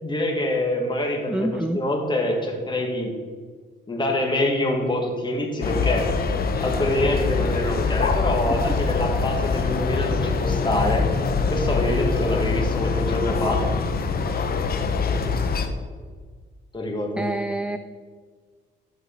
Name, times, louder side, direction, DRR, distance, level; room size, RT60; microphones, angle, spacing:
voice 1, 0.0-1.5 1.7-3.1 3.9-6.1 6.6-11.0 11.5-13.6 16.7-17.2, left 1 dB, 25° left, 1 dB, 2.0 m, -25 dB
voice 2, 1.3-1.8 17.2-17.8, right 1 dB, 5° right, 10 dB, 0.3 m, -26 dB
sound 1, 5.6-15.7, left 4 dB, 50° left, 0.9 m, -24 dB
11.5 x 5.3 x 4.0 m, 1.6 s
cardioid pair, 90°, 20 cm